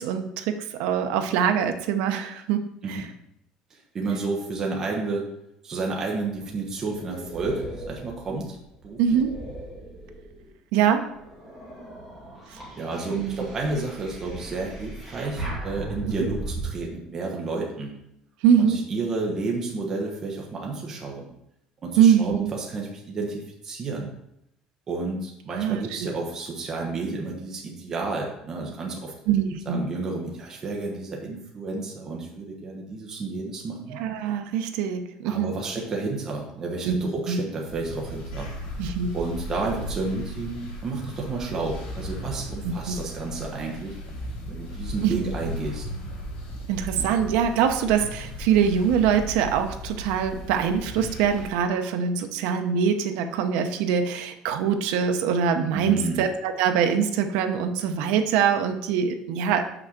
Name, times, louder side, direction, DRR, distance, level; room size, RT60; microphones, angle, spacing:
voice 1, 0.0-2.6 2.9-3.0 9.0-9.4 10.7-11.1 13.1-13.4 16.0-16.3 18.4-18.8 22.0-22.5 25.5-25.9 29.3-29.8 33.9-35.5 36.8-37.4 38.8-39.1 42.6-43.0 45.0-45.3 46.7-59.6, right 8 dB, 85° right, 7 dB, 0.7 m, -23 dB
voice 2, 3.7-5.3 5.6-8.6 8.8-9.2 12.8-18.0 18.6-21.3 21.8-24.1 24.9-29.1 29.6-34.0 35.2-38.5 39.1-43.9 44.5-45.8 47.0-47.1 55.7-56.2, right 3 dB, 25° right, -1 dB, 1.1 m, -31 dB
sound 1, 6.3-10.5 11.0-16.7, right 2 dB, 5° right, 2.7 m, -38 dB
sound 2, 37.7-51.5, equal, 75° left, 3.1 m, -36 dB
6.2 x 4.4 x 6.4 m, 0.79 s
cardioid pair, 170°, 2 cm